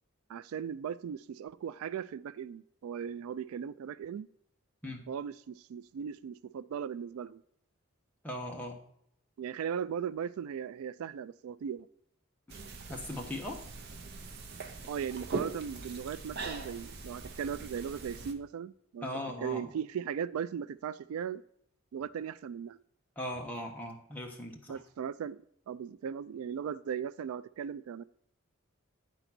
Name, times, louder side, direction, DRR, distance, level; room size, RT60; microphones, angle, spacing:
voice 1, 0.3-4.3 5.1-7.4 9.4-11.9 14.9-19.1 19.4-21.4 21.9-22.8 24.7-28.0, right 7 dB, 80° right, 0.3 m, -38 dB
voice 2, 8.2-8.8 12.9-13.6 19.0-19.7 23.2-24.8, left 1 dB, 5° left, 1.0 m, -39 dB
sound 1, 12.5-18.3, right 4 dB, 50° right, 0.7 m, -41 dB
9.0 x 3.9 x 5.9 m
head